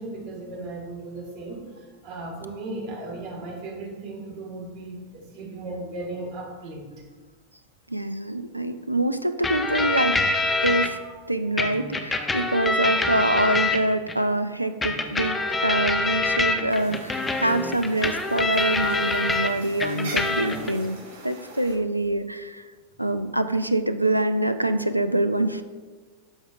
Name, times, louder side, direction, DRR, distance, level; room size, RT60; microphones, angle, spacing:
voice 1, 0.0-6.9 10.9-11.2, right 2 dB, 45° right, 1 dB, 1.9 m, -36 dB
voice 2, 7.9-10.2 10.6-11.0 11.3-21.0 21.2-22.6 23.0-25.6, right 1 dB, 85° right, 10 dB, 0.4 m, -25 dB
sound 1, 9.4-10.9 11.6-14.2 14.8-19.5 19.8-20.7, left 3 dB, 15° left, 0.7 m, -25 dB
sound 2, 16.7-21.7, right 2 dB, 60° right, 1.8 m, -42 dB
12.5 x 4.9 x 2.6 m, 1.4 s
figure-of-eight pair, 90°, 0 cm